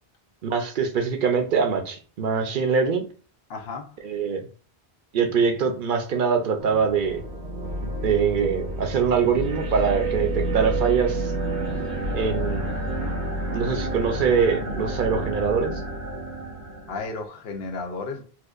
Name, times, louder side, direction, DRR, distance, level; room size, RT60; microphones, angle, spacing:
voice 1, 0.4-3.1 4.0-4.5 5.1-7.2 7.8-11.3 12.1-12.7 13.5-15.8, right 6 dB, 60° right, 0.7 m, -23 dB
voice 2, 3.5-3.9 16.9-18.2, left 3 dB, 70° left, 0.9 m, -33 dB
sound 1, 6.6-17.1, right 1 dB, 90° right, 1.1 m, -29 dB
4.2 x 2.4 x 2.4 m
omnidirectional pair, 1.1 m